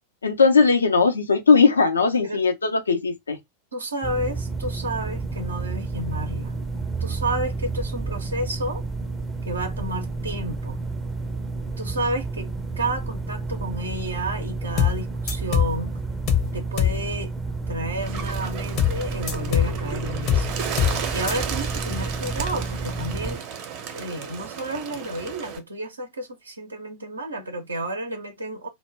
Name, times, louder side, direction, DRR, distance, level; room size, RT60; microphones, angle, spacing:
voice 1, 0.2-3.4, left 4 dB, 75° left, 0.5 m, -18 dB
voice 2, 3.7-6.6 7.0-8.8 9.4-10.8 11.8-15.9 16.5-17.3 17.7-20.6 21.1-23.4 23.9-28.7, right 1 dB, 75° right, 0.6 m, -31 dB
sound 1, 4.0-23.4, right 3 dB, 5° right, 0.5 m, -30 dB
sound 2, 14.8-15.0 15.3-15.8 16.3-16.5 16.8-17.0 18.8-19.0 19.3-19.8 20.3-20.5 20.8-21.0 21.3-21.4, left 9 dB, 35° left, 0.7 m, -21 dB
Bird, 18.0-25.6, right 7 dB, 40° right, 0.7 m, -34 dB
2.1 x 2.1 x 3.3 m
figure-of-eight pair, 90°, 0 cm